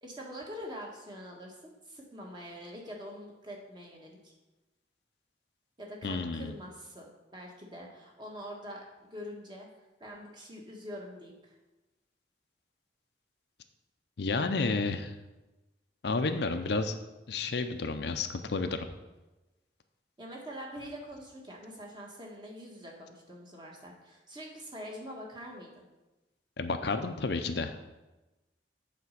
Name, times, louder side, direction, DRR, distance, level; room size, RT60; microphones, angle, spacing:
voice 1, 0.0-4.3 5.8-9.7 10.0-11.5 20.2-25.8, equal, 25° right, -1 dB, 1.5 m, -44 dB
voice 2, 6.0-6.5 14.2-15.1 16.0-16.9 17.3-18.9 26.6-27.8, left 3 dB, 65° left, 8 dB, 0.6 m, -31 dB
8.3 x 4.2 x 6.4 m, 1.1 s
head